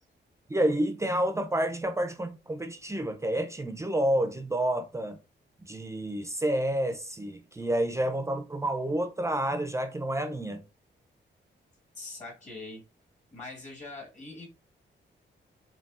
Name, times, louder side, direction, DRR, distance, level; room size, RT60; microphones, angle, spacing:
voice 1, 0.5-5.2 5.7-10.6, right 1 dB, 15° right, 0.4 m, -29 dB
voice 2, 11.9-12.8 13.3-14.5, left 2 dB, 40° left, 1.3 m, -42 dB
5.3 x 2.7 x 2.4 m
wide cardioid pair, 145°, 19 cm